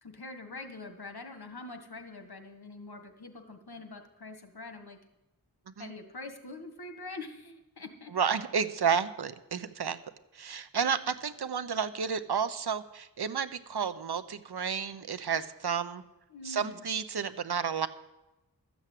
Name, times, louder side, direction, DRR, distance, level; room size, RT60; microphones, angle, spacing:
voice 1, 0.0-5.0 5.8-8.1 16.3-16.8, left 2 dB, 70° left, 6 dB, 1.7 m, -44 dB
voice 2, 8.1-10.0 10.3-16.0 16.4-17.9, right 6 dB, 80° right, 12 dB, 0.8 m, -31 dB
13.0 x 7.2 x 8.4 m, 0.98 s
wide cardioid pair, 45°, 38 cm